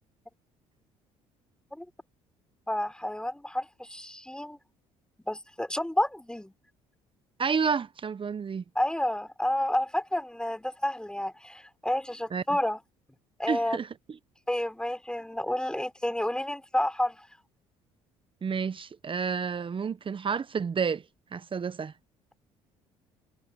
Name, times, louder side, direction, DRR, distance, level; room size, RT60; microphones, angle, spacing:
voice 1, 2.7-4.6 5.3-6.5 8.8-12.8 13.4-13.8 14.5-17.2, left 1 dB, 5° left, 3.8 m, -30 dB
voice 2, 7.4-8.6 12.3-12.6 13.5-13.9 18.4-21.0 21.3-21.9, right 6 dB, 35° right, 1.2 m, -30 dB
hypercardioid pair, 60°, 15 cm